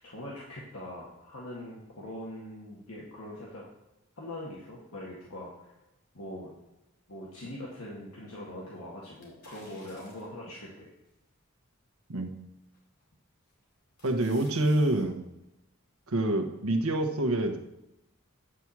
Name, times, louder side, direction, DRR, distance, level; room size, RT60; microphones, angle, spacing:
voice 1, 0.0-3.6 4.2-5.7 6.1-6.5 7.1-10.9, left 1 dB, 75° left, -5 dB, 1.9 m, -42 dB
sound 1, 9.2-10.5 11.1-11.2 12.7-13.1 13.5-15.1 15.4-15.5, left 2 dB, 50° left, 3.4 m, -55 dB
voice 2, 14.0-15.2 16.1-17.6, right 1 dB, 80° right, 6 dB, 1.2 m, -26 dB
9.8 x 4.7 x 7.3 m, 0.91 s
head